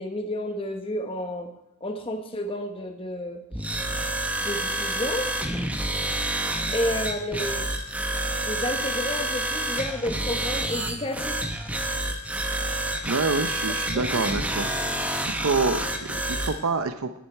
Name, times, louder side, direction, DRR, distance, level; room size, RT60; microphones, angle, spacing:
voice 1, 0.0-1.5 1.8-3.4 4.4-5.3 6.7-7.6 8.4-11.4 13.9-14.3, left 1 dB, 25° left, 5 dB, 1.1 m, -31 dB
sound 1, 3.5-16.6, right 1 dB, 5° right, 0.8 m, -28 dB
voice 2, 13.0-14.7 15.0-17.2, right 4 dB, 75° right, 9 dB, 0.7 m, -27 dB
10.0 x 10.0 x 4.6 m, 0.84 s
head